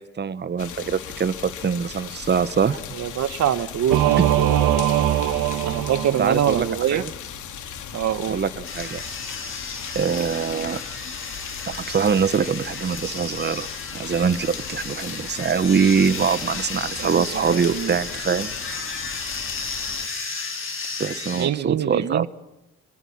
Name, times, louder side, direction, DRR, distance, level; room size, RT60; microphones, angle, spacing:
voice 1, 0.0-2.8 6.2-7.1 8.3-9.0 9.9-10.8 11.7-13.7 13.9-18.5 21.0-22.3, right 6 dB, 35° right, 13 dB, 1.2 m, -23 dB
sound 1, 0.6-20.1, left 8 dB, 75° left, 3.0 m, -37 dB
voice 2, 3.0-4.0 5.6-7.0 7.9-8.4 17.0-17.9 21.3-22.3, right 10 dB, 65° right, 14 dB, 1.3 m, -24 dB
Singing / Musical instrument, 3.9-6.8, right 12 dB, 90° right, 1.5 m, -21 dB
sound 2, 8.6-21.5, left 4 dB, 45° left, 7.3 m, -33 dB
24.5 x 22.5 x 8.7 m, 0.89 s
cardioid pair, 90°, 30 cm